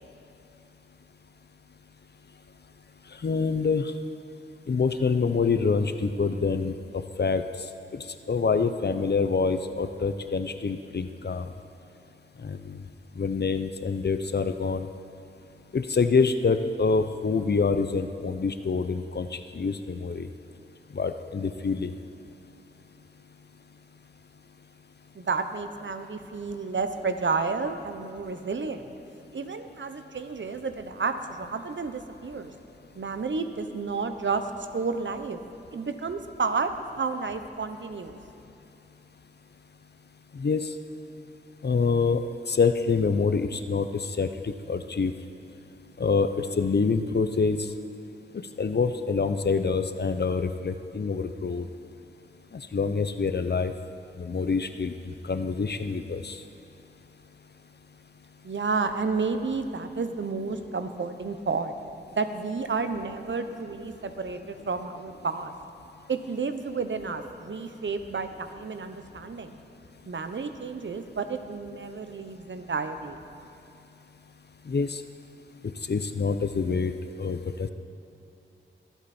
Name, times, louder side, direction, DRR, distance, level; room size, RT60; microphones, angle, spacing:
voice 1, 3.2-3.9 4.7-7.4 7.9-11.5 12.4-12.8 13.2-14.9 15.7-20.3 20.9-21.9 40.4-40.7 41.6-42.2 42.5-43.9 44.2-45.1 46.0-47.7 48.6-51.7 52.7-53.7 54.2-56.4 74.7-75.0 75.9-76.9 77.2-77.7, left 4 dB, 55° left, 9 dB, 0.7 m, -26 dB
voice 2, 25.1-28.9 29.3-32.5 32.9-35.4 35.7-38.2 58.4-61.7 62.1-65.5 66.1-69.5 70.0-73.2, right 4 dB, 65° right, 8 dB, 0.9 m, -31 dB
23.5 x 8.2 x 4.3 m, 2.9 s
wide cardioid pair, 70°, 20 cm